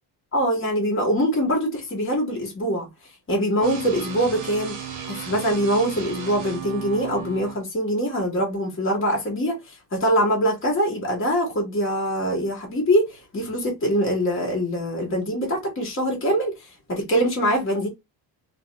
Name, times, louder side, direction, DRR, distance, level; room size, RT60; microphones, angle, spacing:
voice 1, 0.3-2.9 3.3-4.8 5.1-16.5 16.9-17.9, equal, 25° left, 1.9 m, -23 dB
sound 1, 3.6-7.6, right 8 dB, 45° right, 1.1 m, -35 dB
3.2 x 2.5 x 3.4 m
cardioid pair, 135°, 45 cm